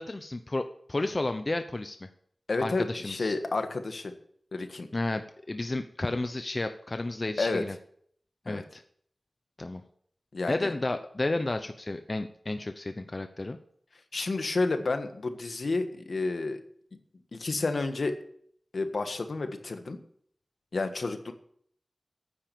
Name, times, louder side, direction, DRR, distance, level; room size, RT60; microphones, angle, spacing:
voice 1, 0.0-2.1 2.6-3.4 4.9-7.8 8.5-8.8 9.6-9.8 10.5-13.6, left 2 dB, 45° left, 8 dB, 0.8 m, -32 dB
voice 2, 2.5-4.1 4.5-4.9 7.4-7.6 8.5-8.6 10.3-10.7 14.1-16.6 17.3-18.2 18.7-20.0 20.7-21.3, left 3 dB, 75° left, 7 dB, 1.5 m, -30 dB
9.7 x 9.3 x 7.0 m, 0.64 s
cardioid pair, 45°, 0 cm